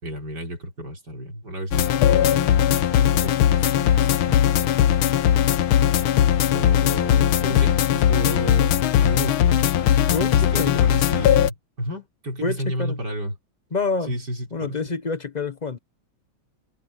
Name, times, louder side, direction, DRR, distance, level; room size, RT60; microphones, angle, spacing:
voice 1, 0.0-5.6 5.9-6.0 6.5-13.3 14.1-14.8, equal, 50° right, 6.2 m, -33 dB
sound 1, 1.7-11.5, left 11 dB, 80° left, 1.7 m, -19 dB
voice 2, 10.1-10.9 12.4-13.0 13.7-14.2 14.5-15.8, left 4 dB, 40° left, 0.6 m, -27 dB
omnidirectional pair, 2.2 m